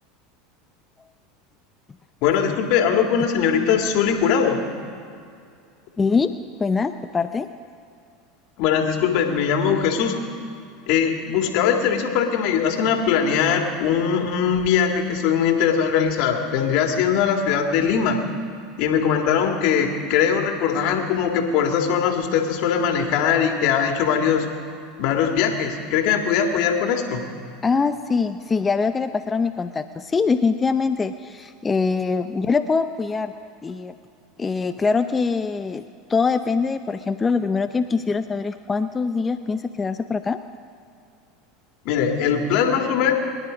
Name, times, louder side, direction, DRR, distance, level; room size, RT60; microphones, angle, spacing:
voice 1, 2.2-4.7 8.6-10.1 10.9-18.2 18.8-24.5 25.0-27.2 41.8-43.1, left 7 dB, 60° left, 3 dB, 2.1 m, -21 dB
voice 2, 6.0-6.3 6.6-7.5 27.6-33.3 33.6-33.9 34.4-35.8 36.1-40.4, left 4 dB, 20° left, 10 dB, 0.6 m, -23 dB
24.0 x 11.0 x 5.2 m, 2.4 s
hypercardioid pair, 90°, 0 cm